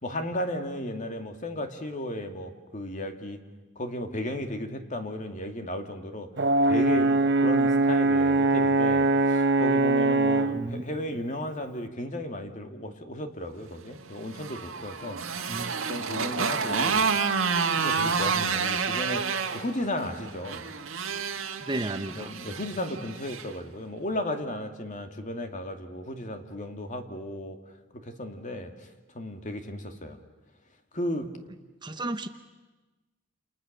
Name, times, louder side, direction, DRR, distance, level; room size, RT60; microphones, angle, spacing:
voice 1, 0.0-3.4 3.8-6.3 6.6-15.2 15.9-17.0 17.8-19.2 19.5-20.7 22.2-27.6 27.9-28.9 29.1-30.2 30.9-31.3, left 1 dB, 40° left, 6 dB, 2.3 m, -34 dB
Brass instrument, 6.4-10.6, right 2 dB, 55° right, 1.1 m, -22 dB
voice 2, 10.5-11.0 15.5-15.8 18.3-18.5 21.6-22.3 31.8-32.3, right 2 dB, 20° right, 9 dB, 0.9 m, -33 dB
Motorcycle, 14.1-23.5, right 5 dB, 75° right, 1.9 m, -29 dB
29.0 x 28.5 x 6.7 m, 1.2 s
head